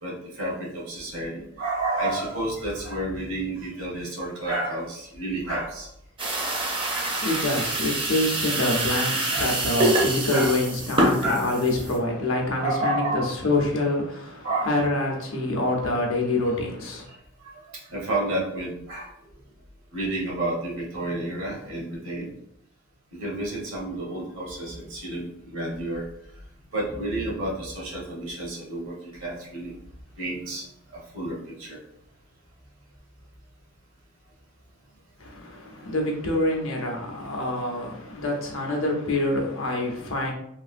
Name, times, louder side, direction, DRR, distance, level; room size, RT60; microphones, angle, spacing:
voice 1, 0.0-5.9 9.3-9.5 10.3-10.5 11.2-11.5 12.6-13.4 14.4-14.7 17.0-17.1 17.4-17.5 17.9-19.1 19.9-22.3 23.1-26.1 26.7-29.7 30.2-30.6 30.9-31.8, right 2 dB, 75° right, 1.3 m, -30 dB
sound 1, 6.2-12.0, right 1 dB, 25° right, 0.5 m, -26 dB
voice 2, 7.0-17.1 35.2-40.3, left 2 dB, 80° left, 0.7 m, -26 dB
3.2 x 2.5 x 2.5 m
head